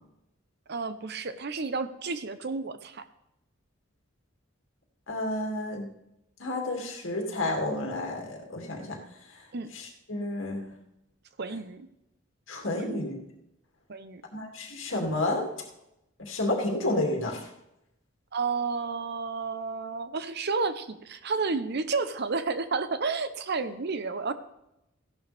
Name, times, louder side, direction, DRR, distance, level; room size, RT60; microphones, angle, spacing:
voice 1, 0.7-3.0 9.5-9.7 11.4-11.9 12.8-13.0 13.9-14.2 18.3-24.3, right 4 dB, 55° right, 12 dB, 0.8 m, -31 dB
voice 2, 5.1-5.9 6.4-9.0 9.7-10.7 12.5-13.1 14.3-15.5 16.2-17.5, left 1 dB, 70° left, 0 dB, 2.6 m, -30 dB
15.0 x 11.0 x 3.5 m, 0.86 s
head